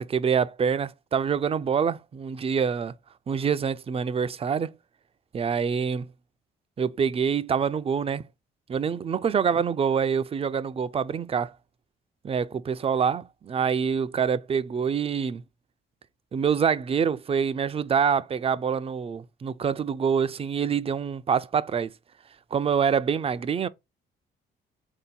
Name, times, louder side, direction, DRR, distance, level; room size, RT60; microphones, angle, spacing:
voice 1, 0.0-2.9 3.3-4.7 5.3-6.1 6.8-8.2 8.7-11.5 12.2-15.4 16.3-21.9 22.5-23.7, right 7 dB, 30° right, 0.4 m, -26 dB
3.8 x 2.8 x 3.8 m
cardioid pair, 90°, 20 cm